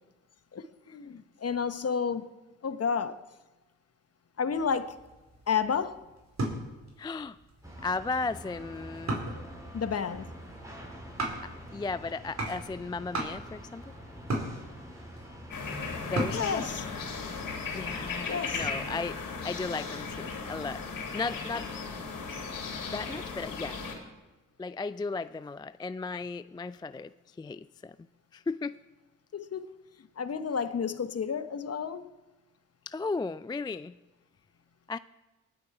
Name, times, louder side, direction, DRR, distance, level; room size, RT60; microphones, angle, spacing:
voice 1, 0.5-2.3 2.6-3.2 4.4-5.0 5.5-6.0 9.7-10.3 16.3-16.8 18.3-18.7 29.3-29.7 30.2-32.1, left 6 dB, 45° left, 1.0 m, -31 dB
sound 1, 4.5-17.7, right 1 dB, 50° right, 4.3 m, -39 dB
voice 2, 7.0-7.4 7.8-9.2 11.7-13.9 16.0-16.7 17.7-20.8 21.1-21.7 22.9-23.8 24.6-27.1 27.4-27.9 28.3-28.7 32.9-33.9 34.9-35.0, left 3 dB, 15° left, 0.3 m, -35 dB
sound 2, 7.6-16.3, equal, 10° right, 4.2 m, -46 dB
sound 3, 15.5-24.0, left 4 dB, 70° left, 3.2 m, -36 dB
19.0 x 8.1 x 4.8 m
supercardioid pair, 40°, 34 cm